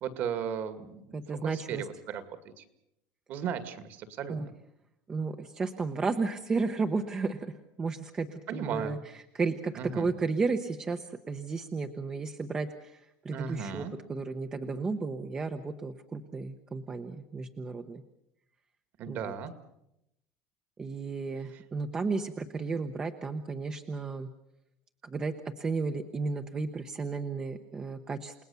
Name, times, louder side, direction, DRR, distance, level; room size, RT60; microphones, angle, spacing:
voice 1, 0.0-2.3 2.6-2.7 3.3-4.5 8.5-9.0 9.8-10.1 13.3-13.9 19.0-19.5 21.5-21.6, right 7 dB, 40° right, 11 dB, 2.0 m, -36 dB
voice 2, 1.1-1.8 4.3-4.5 5.1-7.5 7.8-18.0 19.1-19.3 20.8-24.3 25.0-28.3, right 4 dB, 15° right, 7 dB, 0.9 m, -33 dB
29.5 x 19.0 x 7.0 m, 0.83 s
cardioid pair, 170°, 5 cm